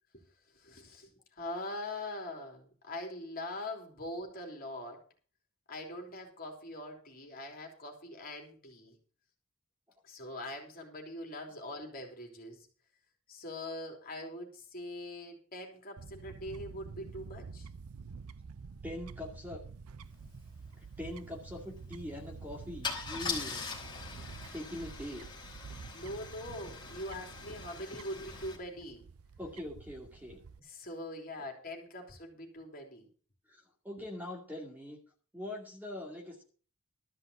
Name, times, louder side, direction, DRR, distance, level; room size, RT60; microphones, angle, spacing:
voice 1, 0.5-5.0 5.7-9.0 10.0-12.7 13.3-17.7 25.9-29.1 30.6-33.1, left 1 dB, 40° left, 2 dB, 3.3 m, -43 dB
Fowl / Bird, 16.0-30.6, right 5 dB, 75° right, 0.6 m, -49 dB
voice 2, 18.8-19.6 21.0-23.7 24.5-25.2 29.4-30.4 33.5-35.0 35.3-36.4, left 1 dB, 10° right, 0 dB, 2.3 m, -42 dB
Car / Engine starting / Idling, 20.2-20.3 20.6-20.8 22.8-28.6, left 5 dB, 20° left, 3.4 m, -42 dB
13.5 x 5.7 x 8.0 m, 0.39 s
head